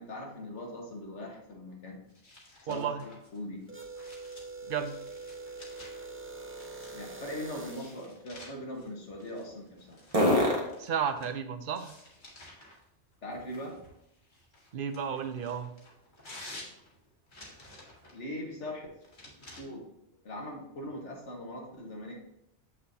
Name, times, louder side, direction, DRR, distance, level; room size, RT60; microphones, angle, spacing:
voice 1, 0.0-2.0 2.6-2.9 3.3-3.6 6.9-10.0 13.2-13.8 18.1-18.9 19.6-19.8 20.2-22.1, left 1 dB, 75° left, 0 dB, 1.8 m, -40 dB
sound 1, 2.1-6.1 6.6-7.2 7.7-11.4 11.7-12.8 13.5-18.2 19.0-19.6, left 1 dB, 45° left, 1.7 m, -51 dB
voice 2, 2.7-3.0 4.7-4.9 10.8-11.9 14.7-15.7, right 7 dB, 55° right, 8 dB, 0.7 m, -33 dB
sound 2, 3.7-8.1, right 3 dB, 15° right, 0.5 m, -44 dB
sound 3, 11.0-14.2 14.7-18.5, left 1 dB, 30° right, 1.4 m, -37 dB
7.7 x 6.1 x 2.8 m, 0.78 s
omnidirectional pair, 1.2 m